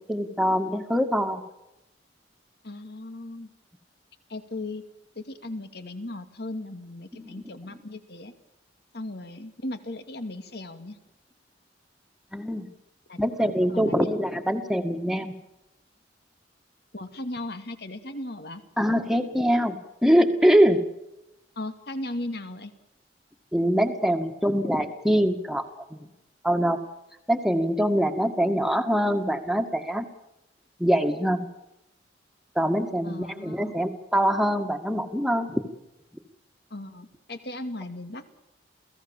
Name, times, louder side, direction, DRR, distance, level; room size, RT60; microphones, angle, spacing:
voice 1, 0.0-1.4 7.1-7.3 12.3-12.7 13.2-15.3 18.8-20.8 23.5-25.6 25.9-26.0 26.4-26.8 27.3-30.1 30.8-31.5 32.6-35.6, equal, ahead, 5 dB, 2.0 m, -23 dB
voice 2, 2.6-3.5 4.3-4.8 5.2-8.3 8.9-11.0 13.1-13.2 13.7-14.0 16.9-18.6 21.6-22.7 33.0-33.8 36.7-38.2, left 1 dB, 60° left, 9 dB, 2.5 m, -37 dB
28.5 x 17.5 x 7.4 m, 0.90 s
head